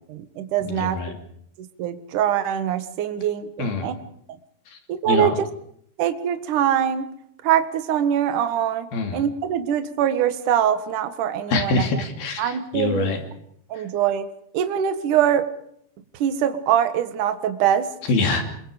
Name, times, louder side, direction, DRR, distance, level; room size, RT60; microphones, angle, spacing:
voice 1, 0.1-1.0 1.6-3.9 4.9-5.4 6.0-7.1 7.4-11.8 12.4-13.1 13.7-14.3 14.5-15.5 16.1-17.9, right 10 dB, 60° right, 9 dB, 2.4 m, -23 dB
voice 2, 0.6-1.2 3.6-3.9 4.7-4.8 5.1-5.3 8.9-9.2 11.5-13.2 18.1-18.4, left 3 dB, 55° left, 5 dB, 4.4 m, -24 dB
27.5 x 23.5 x 5.1 m, 0.68 s
omnidirectional pair, 5.4 m